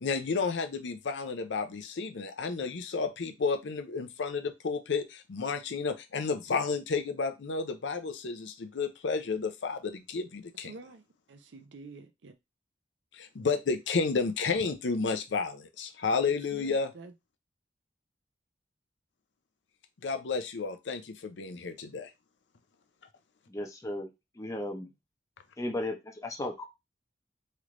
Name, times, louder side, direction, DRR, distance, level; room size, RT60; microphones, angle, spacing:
voice 1, 0.0-10.7 13.1-16.9 20.0-22.1, left 4 dB, 80° left, 0.5 m, -31 dB
voice 2, 10.7-12.4 16.2-17.1, right 3 dB, 85° right, 0.5 m, -48 dB
voice 3, 23.5-24.1 24.3-24.9 25.6-26.7, left 1 dB, 20° left, 0.6 m, -35 dB
3.1 x 3.0 x 2.5 m
head